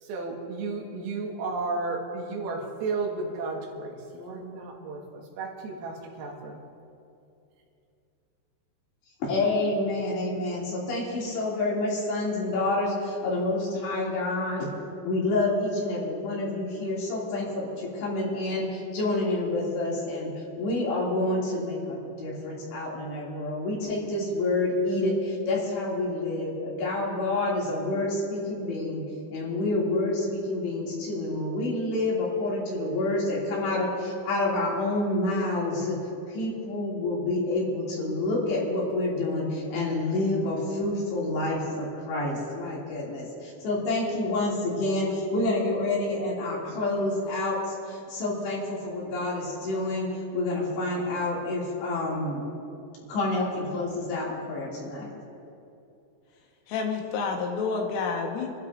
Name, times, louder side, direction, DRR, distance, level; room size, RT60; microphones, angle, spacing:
voice 1, 0.0-6.6, right 3 dB, 90° right, -1 dB, 4.3 m, -33 dB
voice 2, 9.2-14.7 15.0-20.3 20.6-29.0 29.3-36.0 36.3-50.1 50.3-52.4 53.1-55.1, left 2 dB, 60° left, -5 dB, 4.6 m, -28 dB
voice 3, 56.7-58.6, left 5 dB, 85° left, 1 dB, 4.0 m, -29 dB
29.5 x 12.5 x 2.6 m, 2.6 s
omnidirectional pair, 5.8 m